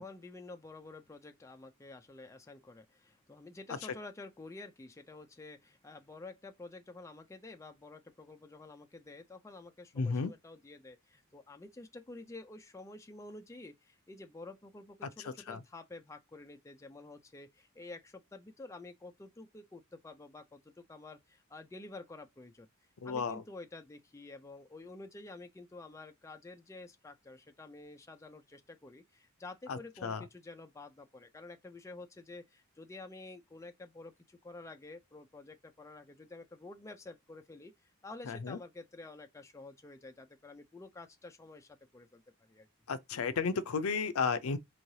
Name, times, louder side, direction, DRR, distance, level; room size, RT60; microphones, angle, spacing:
voice 1, 0.0-22.7 23.0-37.7 38.0-42.7, left 2 dB, 15° left, 0.3 m, -50 dB
voice 2, 10.0-10.3 15.2-15.6 23.0-23.4 29.7-30.2 38.3-38.6 42.9-44.6, left 5 dB, 70° left, 0.5 m, -33 dB
4.5 x 3.1 x 2.7 m
head